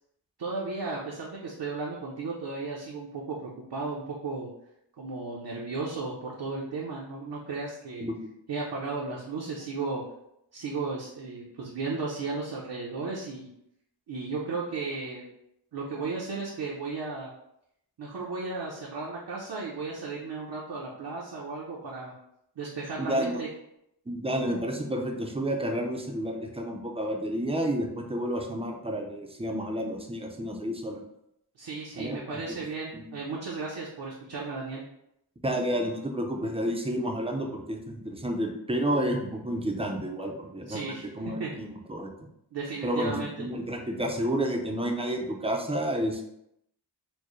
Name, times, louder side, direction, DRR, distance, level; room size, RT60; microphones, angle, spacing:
voice 1, 0.4-4.5 5.0-8.0 8.5-10.0 10.5-13.5 14.1-15.3 15.7-17.3 18.0-22.1 22.6-23.5 31.6-34.8 40.7-41.1 41.4-41.5 42.5-43.3, right 3 dB, 65° right, -3 dB, 0.7 m, -35 dB
voice 2, 23.0-23.4 24.1-31.0 32.0-32.6 32.9-33.1 35.4-42.1 42.8-46.2, equal, 15° right, 2 dB, 0.5 m, -30 dB
4.4 x 2.1 x 3.0 m, 0.79 s
wide cardioid pair, 100°, 44 cm